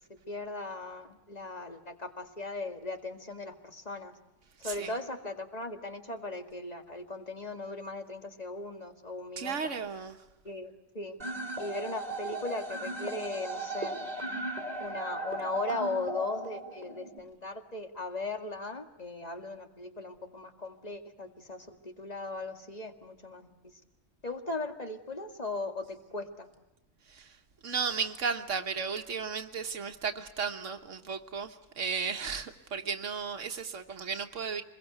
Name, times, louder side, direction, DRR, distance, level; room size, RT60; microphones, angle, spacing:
voice 1, 0.3-4.1 4.6-9.7 10.4-11.2 11.6-13.9 14.8-23.5 24.2-26.5, left 2 dB, 35° left, 5 dB, 2.2 m, -38 dB
voice 2, 4.6-4.9 9.4-10.2 27.1-34.6, right 6 dB, 80° right, 6 dB, 1.5 m, -35 dB
sound 1, 11.2-17.2, right 1 dB, 35° right, 2.9 m, -37 dB
26.0 x 22.0 x 7.9 m, 0.94 s
omnidirectional pair, 1.2 m